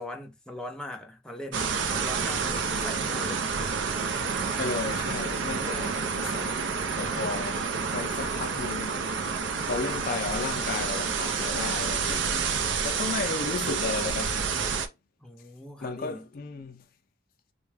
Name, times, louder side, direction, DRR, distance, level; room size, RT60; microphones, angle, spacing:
voice 1, 0.0-1.7 2.0-3.5 7.1-7.5 15.2-16.3, left 1 dB, 5° left, 0.6 m, -40 dB
sound 1, 1.5-14.9, right 5 dB, 75° right, 0.6 m, -29 dB
voice 2, 4.6-6.6 7.0-7.6 7.9-9.4 9.7-12.5 12.8-14.4 14.7-14.9 15.8-16.8, left 4 dB, 50° left, 0.4 m, -34 dB
3.6 x 2.2 x 3.3 m
head